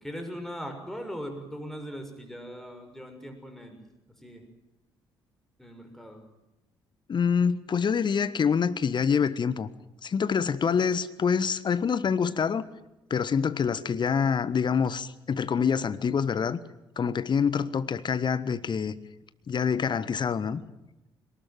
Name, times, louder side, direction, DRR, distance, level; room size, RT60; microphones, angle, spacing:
voice 1, 0.0-3.8 4.2-4.4 5.6-6.2, equal, 5° left, 6.4 m, -39 dB
voice 2, 7.1-9.7 10.0-12.6 13.1-16.6 17.0-18.9 19.5-20.6, left 6 dB, 40° left, 1.3 m, -26 dB
22.0 x 19.5 x 9.1 m
figure-of-eight pair, 45°, 12 cm